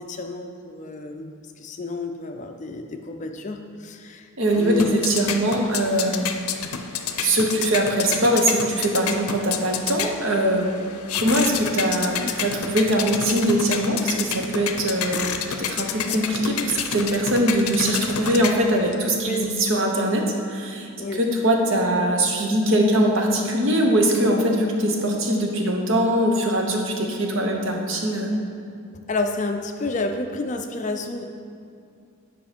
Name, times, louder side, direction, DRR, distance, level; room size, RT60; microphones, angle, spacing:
voice 1, 0.0-4.3 4.5-5.1 19.2-19.5 21.0-21.2 29.1-31.2, left 2 dB, 35° left, 5 dB, 0.4 m, -30 dB
voice 2, 4.4-6.4 7.2-10.7 11.1-20.2 20.5-28.3, right 1 dB, 60° right, 1 dB, 0.9 m, -22 dB
sound 1, 4.5-18.9, left 7 dB, 90° left, 0.5 m, -30 dB
7.4 x 5.0 x 5.1 m, 2.4 s
head